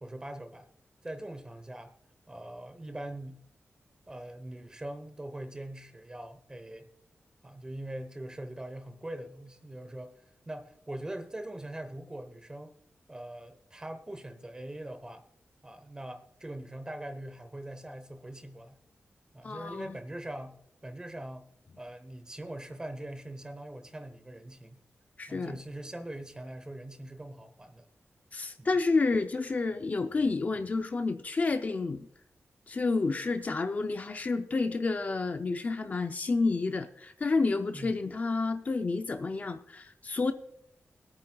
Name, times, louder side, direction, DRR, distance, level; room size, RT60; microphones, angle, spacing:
voice 1, 0.0-0.7 1.0-1.9 2.3-3.4 4.1-6.9 7.4-10.2 10.5-12.8 13.1-15.2 15.6-18.8 19.3-20.6 20.8-21.5 21.8-24.8 25.3-27.9 28.6-28.7 37.7-37.9, right 1 dB, 15° right, 8 dB, 0.9 m, -42 dB
voice 2, 19.4-20.0 25.2-25.6 28.3-32.1 32.7-40.3, left 3 dB, 35° left, 8 dB, 0.5 m, -30 dB
24.5 x 8.8 x 2.3 m, 0.70 s
wide cardioid pair, 175°, 4 cm